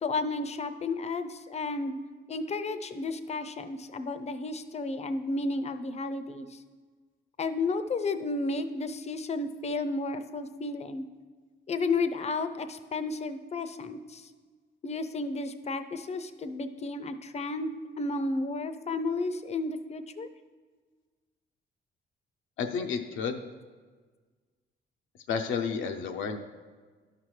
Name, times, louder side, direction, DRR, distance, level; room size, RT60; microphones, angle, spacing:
voice 1, 0.0-2.0 2.3-6.6 7.4-11.0 11.7-14.3 14.8-20.3, left 3 dB, 35° left, 10 dB, 0.5 m, -32 dB
voice 2, 22.6-23.4 25.3-26.4, left 6 dB, 75° left, 5 dB, 0.6 m, -31 dB
11.5 x 5.8 x 3.2 m, 1.4 s
cardioid pair, 90°, 20 cm